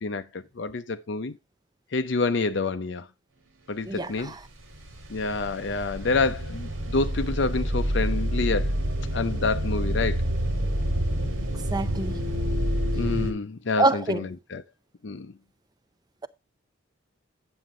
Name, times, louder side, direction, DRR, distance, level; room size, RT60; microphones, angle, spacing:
voice 1, 0.0-1.4 1.9-3.1 3.7-4.3 5.1-8.7 9.1-10.2 12.9-14.6 15.0-15.3, left 3 dB, 60° left, 0.6 m, -28 dB
voice 2, 3.9-4.4 11.7-12.2 13.8-14.2, right 2 dB, 20° right, 0.5 m, -25 dB
sound 1, 4.2-4.5 4.7-13.3, equal, 80° right, 2.8 m, -28 dB
9.2 x 7.1 x 3.7 m
head